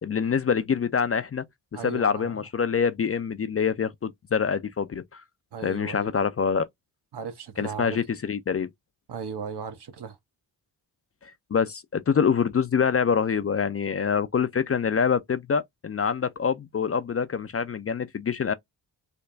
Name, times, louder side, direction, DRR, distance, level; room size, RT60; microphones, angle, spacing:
voice 1, 0.0-1.4 1.8-5.2 5.6-6.7 7.6-8.7 11.5-18.5, left 6 dB, 30° left, 0.5 m, -25 dB
voice 2, 1.7-2.4 5.5-6.1 7.1-8.0 9.1-10.2, right 6 dB, 60° right, 1.1 m, -36 dB
3.4 x 2.2 x 3.8 m
supercardioid pair, 45°, 46 cm